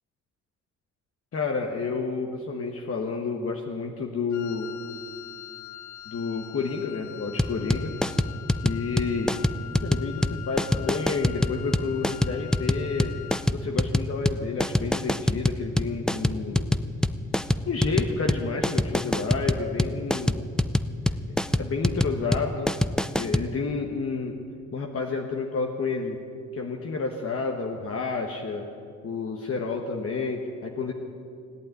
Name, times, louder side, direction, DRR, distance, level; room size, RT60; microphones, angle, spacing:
voice 1, 1.3-4.7 6.1-7.9 8.6-9.3 9.8-13.1 13.5-16.6 17.7-20.5 21.6-22.7 23.1-24.4 24.7-26.2 26.5-28.7 29.0-30.9, left 4 dB, 50° left, 1 dB, 1.3 m, -30 dB
Wind instrument woodwind instrument, 4.3-13.6, left 12 dB, 75° left, 0.8 m, -43 dB
sound 1, 7.4-23.5, left 1 dB, ahead, 0.4 m, -24 dB
17.0 x 8.7 x 9.3 m, 2.3 s
cardioid pair, 90°, 30 cm